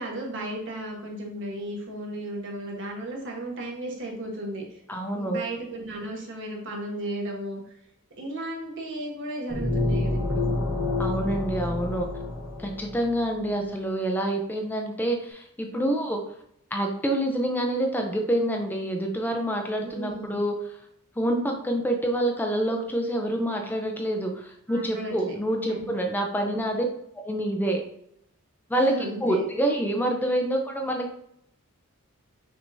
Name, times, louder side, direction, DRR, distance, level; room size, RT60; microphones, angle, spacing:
voice 1, 0.0-4.8 5.1-7.7 8.2-10.5 13.4-13.7 19.8-20.4 24.7-25.4 25.7-25.9 26.4-26.6 28.9-29.4, right 1 dB, 60° right, 0 dB, 1.3 m, -35 dB
voice 2, 4.9-5.4 11.0-12.1 12.6-16.2 16.7-20.6 21.2-26.9 27.1-27.8 28.7-28.9 29.2-31.2, right 1 dB, 10° left, 2 dB, 0.4 m, -27 dB
sound 1, 9.5-13.2, left 2 dB, 85° left, 1.5 m, -28 dB
5.9 x 3.4 x 2.6 m, 0.75 s
head